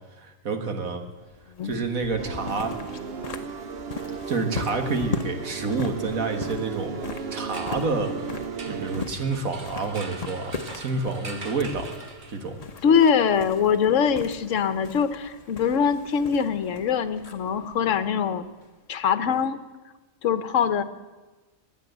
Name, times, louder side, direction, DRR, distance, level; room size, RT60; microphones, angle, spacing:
voice 1, 0.2-1.0 1.6-2.7 4.3-6.9 7.3-8.1 8.7-11.9 12.3-12.6, right 3 dB, 85° right, 5 dB, 2.0 m, -28 dB
sound 1, 1.2-18.9, left 3 dB, 30° left, 0.9 m, -40 dB
sound 2, 2.2-9.0, right 5 dB, 55° right, 0.9 m, -35 dB
sound 3, 7.0-12.7, right 3 dB, 40° right, 1.3 m, -43 dB
voice 2, 12.8-18.4 18.9-19.6 20.2-20.8, left 7 dB, 70° left, 12 dB, 1.2 m, -23 dB
21.0 x 8.5 x 8.0 m, 1.2 s
omnidirectional pair, 1.4 m